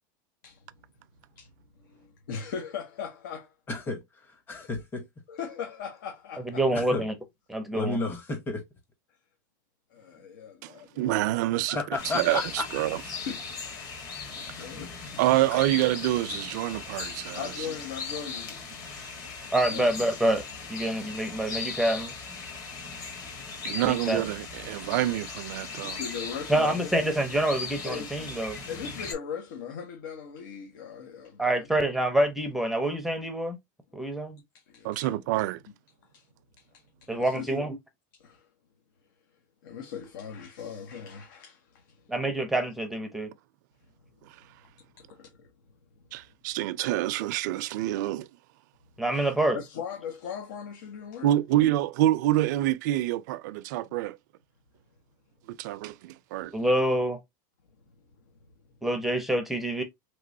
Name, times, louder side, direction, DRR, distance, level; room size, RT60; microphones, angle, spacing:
voice 1, 1.8-3.5 5.3-6.8 9.9-11.2 13.1-13.9 14.3-15.5 17.3-18.6 19.0-19.3 19.7-19.9 25.8-27.1 27.8-28.3 28.7-31.6 34.5-35.1 36.1-36.3 36.6-37.6 38.1-38.5 39.6-42.1 45.0-45.5 49.5-51.3, left 7 dB, 80° left, 0.9 m, -39 dB
voice 2, 3.7-4.0 4.5-5.1 6.7-7.0 7.7-8.6 11.7-12.6 14.8-14.9 15.5-15.6, left 3 dB, 20° left, 1.0 m, -32 dB
voice 3, 6.5-7.1 7.5-8.0 19.5-20.4 20.7-22.1 23.8-24.2 26.5-28.6 31.4-33.6 33.9-34.4 37.1-37.8 42.1-43.3 49.0-49.6 56.5-57.2 58.8-59.8, right 1 dB, ahead, 0.5 m, -26 dB
voice 4, 10.6-11.8 12.1-13.0 15.2-17.5 23.6-26.0 34.8-35.6 46.1-48.3 51.2-54.2 55.5-56.5, right 15 dB, 65° right, 0.4 m, -27 dB
sound 1, 12.0-29.1, left 5 dB, 35° left, 1.4 m, -38 dB
3.3 x 3.0 x 2.6 m
supercardioid pair, 140°, 10 cm